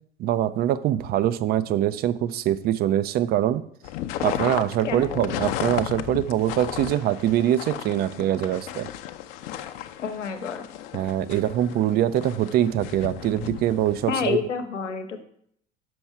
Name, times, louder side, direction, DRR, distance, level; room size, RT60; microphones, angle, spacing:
voice 1, 0.2-3.6 4.2-8.9 10.9-14.4, right 11 dB, 25° right, 15 dB, 0.4 m, -23 dB
sound 1, 3.8-14.2, left 12 dB, 50° left, 0.7 m, -34 dB
voice 2, 10.0-10.7 14.1-15.2, left 6 dB, 75° left, 8 dB, 1.0 m, -28 dB
6.1 x 6.1 x 5.5 m, 0.67 s
figure-of-eight pair, 70°, 37 cm